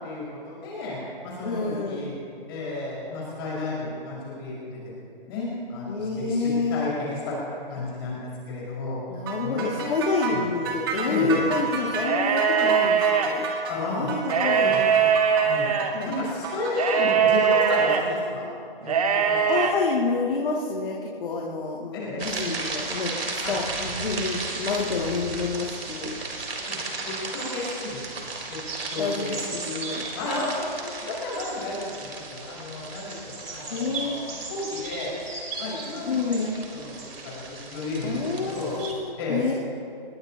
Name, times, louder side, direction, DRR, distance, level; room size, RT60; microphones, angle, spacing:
voice 1, 0.0-2.1 2.5-5.0 5.3-9.0 9.4-10.5 11.1-11.4 13.7-14.1 14.6-15.1 15.4-15.7 16.0-18.5 18.8-19.4 21.9-22.3 23.4-23.6 26.7-26.8 27.0-28.0 28.5-28.6 28.8-29.4 30.1-35.1 35.6-37.0 37.2-38.7 39.2-39.6, left 2 dB, 25° left, -6 dB, 5.2 m, -32 dB
voice 2, 1.4-2.1 5.9-6.9 9.1-13.5 13.9-14.7 15.9-16.2 19.5-26.2 29.0-30.0 33.7-34.2 36.1-36.5 38.0-39.5, left 4 dB, 65° left, -4 dB, 2.5 m, -28 dB
sound 1, 9.3-17.8, right 5 dB, 25° right, 1.8 m, -32 dB
sound 2, 12.0-13.3 14.2-15.9 16.8-18.0 18.8-19.7, right 7 dB, 40° right, 1.3 m, -21 dB
sound 3, 22.2-38.9, right 3 dB, 80° right, 4.0 m, -35 dB
22.0 x 21.5 x 2.9 m, 2.5 s
hypercardioid pair, 165°, 29 cm